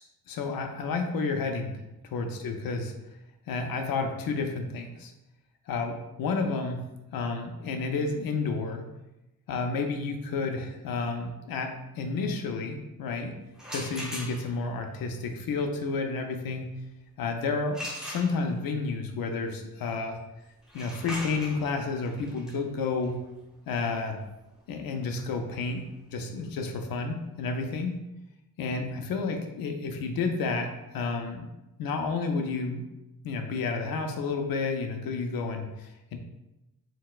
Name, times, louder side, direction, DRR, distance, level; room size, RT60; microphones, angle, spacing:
voice 1, 0.3-1.8 2.0-2.9 3.5-5.1 5.7-6.8 7.1-8.9 9.5-13.3 13.7-16.7 17.2-20.2 20.7-23.2 23.7-24.2 24.7-27.9 28.6-31.5 31.8-32.8 33.2-36.2, left 4 dB, 70° left, 4 dB, 0.5 m, -31 dB
sound 1, 13.5-14.7 17.7-18.8 20.6-26.3, equal, ahead, 0.6 m, -41 dB
3.9 x 2.1 x 2.3 m, 0.96 s
wide cardioid pair, 140°, 37 cm